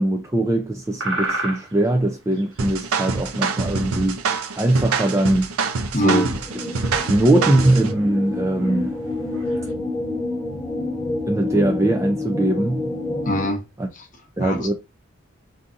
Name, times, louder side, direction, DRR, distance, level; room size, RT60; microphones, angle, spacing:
voice 1, 0.0-4.2 4.6-5.5 6.0-6.3 7.1-8.9 11.3-12.8 14.4-14.7, right 1 dB, 15° right, 0.3 m, -21 dB
sound 1, 0.9-4.1 4.4-4.5 4.7-9.7, right 2 dB, 60° right, 1.2 m, -34 dB
sound 2, 2.6-7.9, right 4 dB, 80° right, 0.6 m, -25 dB
voice 2, 5.9-6.3 13.2-13.6 13.9-14.7, equal, 35° left, 0.8 m, -24 dB
sound 3, 6.2-13.5, left 2 dB, 5° left, 0.8 m, -28 dB
3.8 x 2.7 x 2.5 m
head